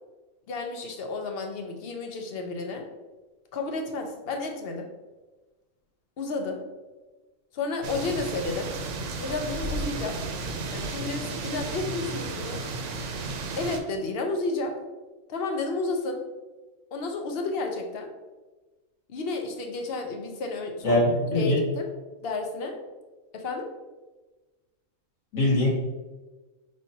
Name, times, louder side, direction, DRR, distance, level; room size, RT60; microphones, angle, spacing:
voice 1, 0.5-2.9 3.5-4.9 6.2-6.6 7.5-8.7 9.2-10.2 10.7-12.6 13.6-14.8 15.3-16.2 16.9-18.1 19.1-21.0 21.3-21.9 22.2-22.8 23.3-23.7, left 3 dB, 55° left, 3 dB, 0.8 m, -31 dB
sound 1, 7.8-13.8, right 3 dB, 70° right, 0.9 m, -33 dB
voice 2, 20.8-21.6 25.3-25.7, left 1 dB, 90° left, -5 dB, 1.7 m, -22 dB
5.3 x 3.2 x 2.7 m, 1.2 s
omnidirectional pair, 1.4 m